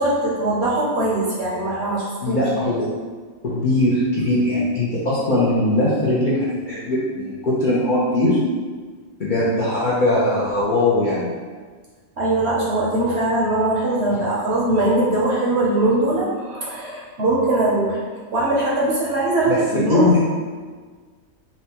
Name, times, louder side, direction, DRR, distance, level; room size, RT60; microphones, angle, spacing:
voice 1, 0.0-2.4 12.2-18.0 18.3-20.1, right 2 dB, 60° right, -5 dB, 0.8 m, -21 dB
voice 2, 2.2-2.9 3.4-8.4 9.2-11.3 19.5-19.6 19.9-20.2, left 2 dB, 55° left, -9 dB, 0.5 m, -20 dB
4.1 x 2.2 x 2.8 m, 1.5 s
omnidirectional pair, 1.5 m